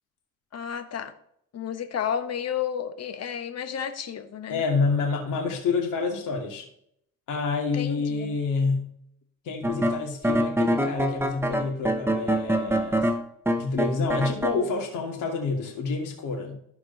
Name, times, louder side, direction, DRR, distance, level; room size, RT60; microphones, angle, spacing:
voice 1, 0.5-1.1 1.5-4.6 7.7-8.4, left 8 dB, 55° left, 9 dB, 1.3 m, -32 dB
voice 2, 4.5-6.7 7.3-8.9 9.4-13.1 13.6-16.6, left 4 dB, 85° left, 1 dB, 2.6 m, -28 dB
sound 1, 9.6-14.6, equal, 10° right, 1.1 m, -25 dB
14.5 x 4.8 x 4.0 m, 0.70 s
cardioid pair, 90°, 30 cm